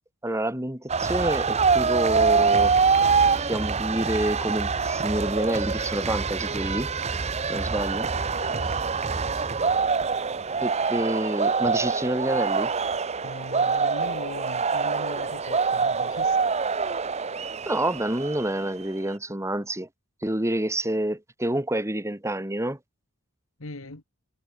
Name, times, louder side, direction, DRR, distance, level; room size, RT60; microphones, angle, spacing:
voice 1, 0.2-2.7 3.3-6.9 7.5-8.1 10.6-12.7 17.7-19.9 20.2-22.8, right 1 dB, 15° right, 1.9 m, -28 dB
sound 1, 0.9-18.7, right 5 dB, 30° right, 0.8 m, -25 dB
voice 2, 8.1-9.5 13.2-16.5 23.6-24.0, left 2 dB, 70° left, 2.0 m, -41 dB
head